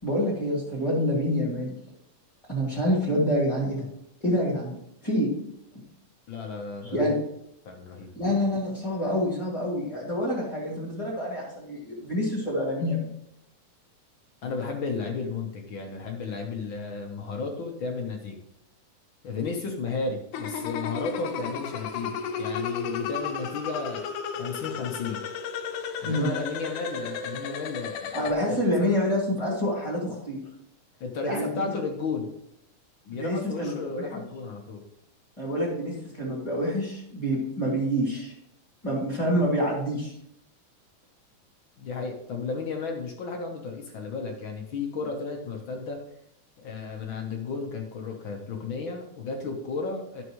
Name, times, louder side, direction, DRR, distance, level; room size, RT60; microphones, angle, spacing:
voice 1, 0.0-1.7 2.5-3.8 4.2-4.8 5.0-5.3 6.8-7.1 8.1-13.1 26.0-26.3 28.1-30.4 31.2-31.7 33.1-34.1 35.4-38.3 38.8-40.1, equal, 10° left, -7 dB, 2.3 m, -27 dB
voice 2, 6.3-7.2 7.6-8.1 14.4-18.4 19.2-24.0 24.3-25.2 26.0-28.1 28.5-28.9 31.0-32.3 33.0-34.8 41.8-46.0 46.6-50.2, left 4 dB, 60° left, 2 dB, 1.3 m, -33 dB
sound 1, 20.3-28.3, left 6 dB, 85° left, 2.2 m, -33 dB
13.0 x 6.3 x 3.1 m, 0.74 s
omnidirectional pair, 3.5 m